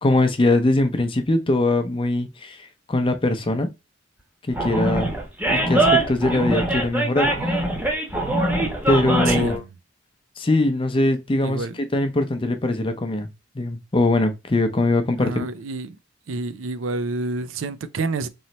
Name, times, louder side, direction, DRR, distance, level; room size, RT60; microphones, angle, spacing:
voice 1, 0.0-3.7 4.5-5.1 5.5-7.3 8.9-9.6 10.4-11.7 11.9-13.3 13.5-15.5, left 2 dB, 25° left, 0.6 m, -21 dB
Animal, 4.5-9.6, right 1 dB, 10° right, 0.9 m, -22 dB
voice 2, 9.3-9.7 11.4-11.7 15.2-16.0 16.3-18.3, right 3 dB, 80° right, 0.5 m, -28 dB
3.1 x 3.0 x 4.1 m
head